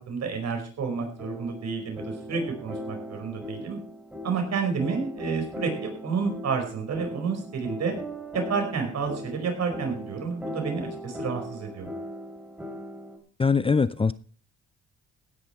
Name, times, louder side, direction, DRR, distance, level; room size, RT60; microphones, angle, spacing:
voice 1, 0.0-3.8 4.2-7.9 8.3-11.9, right 5 dB, 60° right, 4 dB, 4.9 m, -30 dB
sound 1, 0.9-13.2, equal, 5° right, 3.1 m, -39 dB
voice 2, 13.4-14.1, left 5 dB, 20° left, 15 dB, 0.5 m, -22 dB
16.5 x 10.0 x 4.4 m, 0.42 s
cardioid pair, 90°, 30 cm